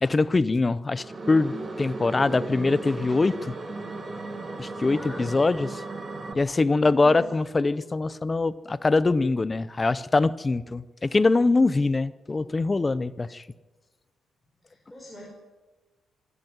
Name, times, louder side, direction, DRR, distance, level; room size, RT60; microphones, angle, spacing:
voice 1, 0.0-3.5 4.6-5.8 6.3-13.4, left 3 dB, 20° left, 17 dB, 0.6 m, -23 dB
sound 1, 1.0-6.3, right 2 dB, 25° right, 2.3 m, -36 dB
voice 2, 2.2-2.8 4.8-5.3 6.8-7.4 14.6-15.3, equal, ahead, -4 dB, 5.1 m, -42 dB
25.0 x 12.0 x 9.3 m, 1.2 s
cardioid pair, 150°, 0 cm